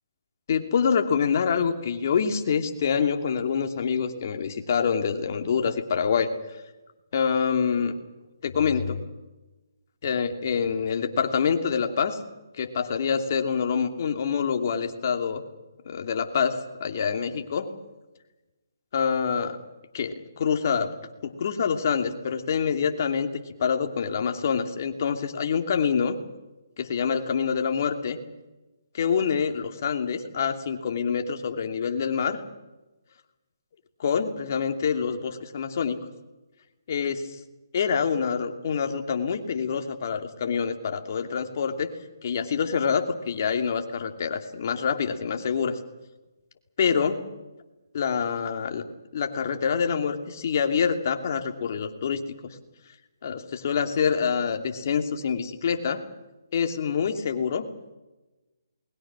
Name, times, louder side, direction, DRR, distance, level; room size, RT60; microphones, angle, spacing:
voice 1, 0.5-6.3 7.1-8.0 8.4-9.0 10.0-12.2 12.6-15.4 15.8-17.7 18.9-19.6 19.9-20.9 21.2-26.2 26.8-28.2 28.9-32.4 34.0-36.0 36.9-37.2 37.7-41.9 42.2-45.8 46.8-47.2 47.9-48.8 49.1-52.2 53.2-56.0 56.5-57.7, left 6 dB, 50° left, 5 dB, 2.7 m, -26 dB
28.5 x 21.0 x 6.2 m, 1.1 s
hypercardioid pair, 155°, 2 cm